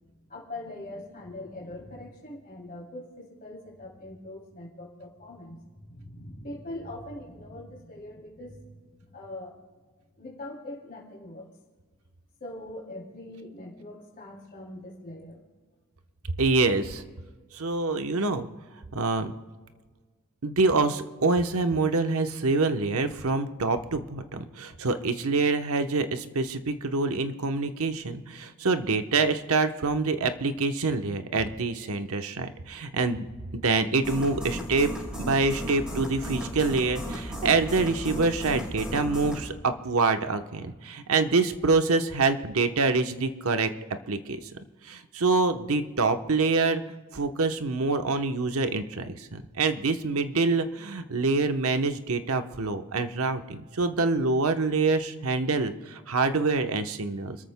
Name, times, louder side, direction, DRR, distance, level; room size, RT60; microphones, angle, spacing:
voice 1, 0.3-9.6 10.2-11.5 12.4-15.4, left 1 dB, 40° left, -2 dB, 2.9 m, -42 dB
voice 2, 16.4-17.0 17.5-18.5 18.9-19.3 20.4-33.3 33.5-34.9 35.2-43.7 44.1-44.4 44.8-46.8 47.1-57.4, right 3 dB, 70° right, 8 dB, 0.9 m, -26 dB
sound 1, 34.0-39.5, equal, 5° right, 4.7 m, -35 dB
30.0 x 13.5 x 2.2 m, 1.4 s
head